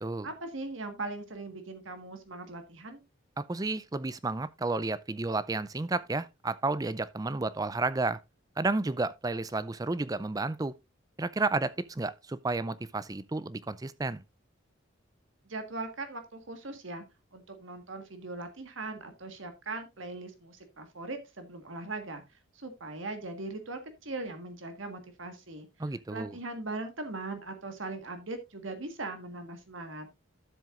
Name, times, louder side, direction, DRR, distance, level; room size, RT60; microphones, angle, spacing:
voice 1, 0.2-3.0 15.4-17.0 17.3-22.2 22.5-25.7 26.1-30.1, right 2 dB, 70° right, 1.6 m, -40 dB
voice 2, 3.4-8.2 8.6-10.7 11.2-14.2 25.8-26.4, right 3 dB, 20° right, 0.4 m, -31 dB
12.5 x 7.5 x 2.5 m
head